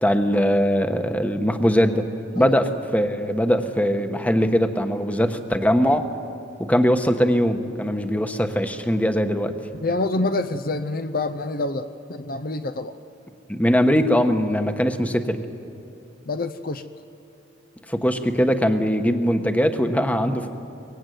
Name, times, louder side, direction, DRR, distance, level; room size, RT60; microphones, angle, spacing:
voice 1, 0.0-2.1 2.3-6.1 6.6-9.5 13.5-15.4 17.9-20.5, equal, 10° left, 7 dB, 1.2 m, -21 dB
voice 2, 9.8-13.0 16.3-16.8, left 2 dB, 50° left, 9 dB, 0.7 m, -27 dB
23.5 x 21.5 x 9.3 m, 2.9 s
head